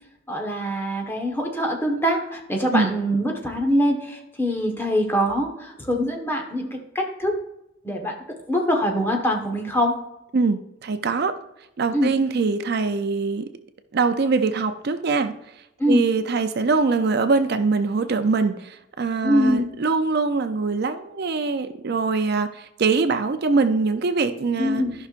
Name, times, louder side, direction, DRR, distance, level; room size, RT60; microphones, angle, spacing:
voice 1, 0.3-7.4 7.8-8.2 8.5-9.9 11.9-12.1 15.8-16.0 19.2-19.7 24.6-24.9, equal, 10° left, 1 dB, 1.3 m, -23 dB
voice 2, 10.3-11.3 11.8-13.4 13.9-15.3 15.9-24.8, right 4 dB, 55° right, 9 dB, 0.5 m, -23 dB
13.5 x 5.7 x 2.5 m, 0.85 s
head